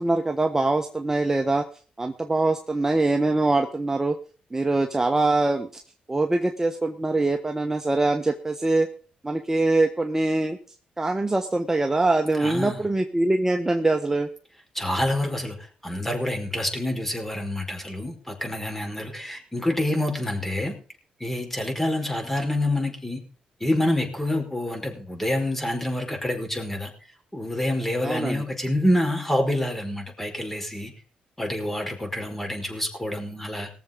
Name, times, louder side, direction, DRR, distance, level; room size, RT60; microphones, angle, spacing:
voice 1, 0.0-1.6 2.0-4.1 4.5-5.8 6.1-8.9 9.2-10.6 11.0-14.3 28.0-28.4, right 2 dB, 15° right, 5 dB, 1.2 m, -23 dB
voice 2, 12.4-12.8 14.7-20.8 21.2-23.2 23.6-26.9 27.3-30.9 31.4-33.7, left 1 dB, 10° left, 3 dB, 5.0 m, -27 dB
19.0 x 7.3 x 5.3 m, 0.40 s
cardioid pair, 70°, 3 cm